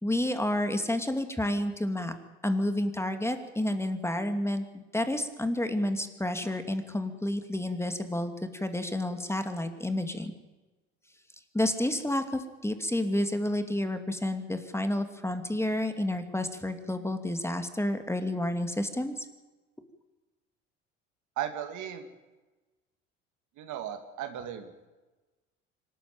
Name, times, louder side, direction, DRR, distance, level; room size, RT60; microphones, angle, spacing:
voice 1, 0.0-2.1 2.4-10.3 11.5-19.1, left 1 dB, 5° left, 8 dB, 2.5 m, -30 dB
voice 2, 21.4-22.1 23.6-24.7, right 10 dB, 60° right, 8 dB, 2.4 m, -36 dB
25.5 x 12.5 x 9.2 m, 1.2 s
hypercardioid pair, 60°, 34 cm